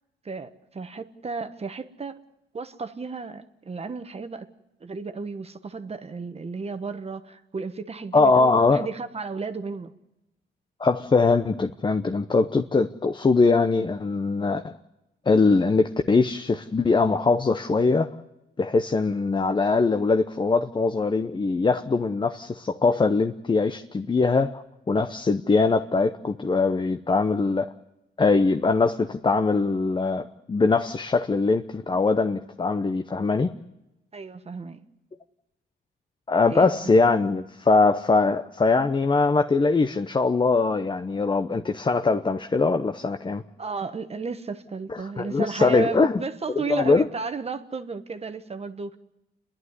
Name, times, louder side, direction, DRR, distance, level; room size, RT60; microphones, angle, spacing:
voice 1, 0.2-2.2 2.5-4.5 4.8-9.9 34.1-34.8 36.5-36.8 43.6-49.0, right 4 dB, 30° right, 1.3 m, -33 dB
voice 2, 8.1-8.9 10.8-14.7 15.3-18.1 18.6-27.7 28.2-33.5 36.3-43.4 44.9-46.2 46.6-47.1, left 3 dB, 25° left, 0.8 m, -22 dB
28.5 x 11.5 x 9.7 m
cardioid pair, 90°, 20 cm